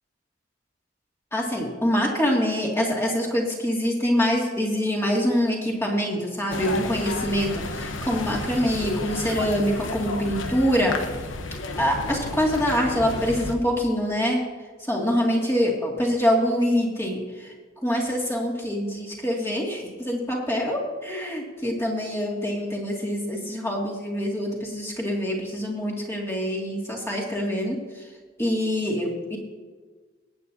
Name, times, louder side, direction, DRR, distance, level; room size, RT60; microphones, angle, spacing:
voice 1, 1.3-10.9 11.8-14.4 14.9-17.5 17.8-27.8 28.4-29.4, equal, 15° left, -2 dB, 2.3 m, -25 dB
sound 1, 6.5-13.5, left 2 dB, 90° left, 1.0 m, -32 dB
21.0 x 8.9 x 2.8 m, 1.4 s
head